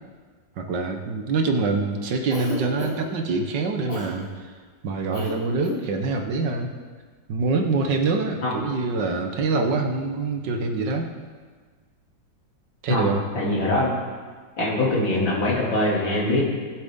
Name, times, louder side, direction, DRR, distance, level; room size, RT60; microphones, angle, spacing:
voice 1, 0.6-4.3 4.8-6.7 7.3-11.1 12.8-13.3, right 3 dB, 70° right, 4 dB, 1.7 m, -25 dB
Cough, 2.3-3.2 3.9-4.1 5.1-5.3 5.6-5.8, left 1 dB, 65° left, 4.1 m, -32 dB
voice 2, 12.9-13.9 14.6-16.4, left 1 dB, 80° left, -5 dB, 3.6 m, -23 dB
19.5 x 7.8 x 3.7 m, 1.5 s
omnidirectional pair, 2.1 m